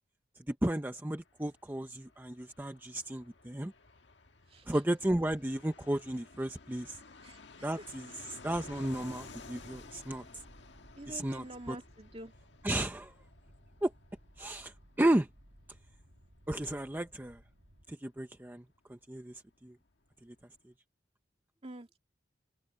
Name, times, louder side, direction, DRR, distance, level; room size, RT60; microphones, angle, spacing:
voice 1, 0.5-3.7 4.7-7.0 7.6-10.4 11.1-11.8 12.6-13.1 13.8-13.9 14.4-15.3 16.5-17.4 17.9-18.6 18.9-19.8 20.2-20.3, right 1 dB, 10° right, 0.7 m, -34 dB
Fixed-wing aircraft airplane, 1.0-19.4 19.6-19.7 19.9-20.6, left 3 dB, 85° left, 1.6 m, -55 dB
sound 1, 8.4-17.9, equal, 70° right, 5.0 m, -59 dB
voice 2, 11.0-12.3 21.6-22.0, right 1 dB, 35° right, 2.3 m, -46 dB
open air
head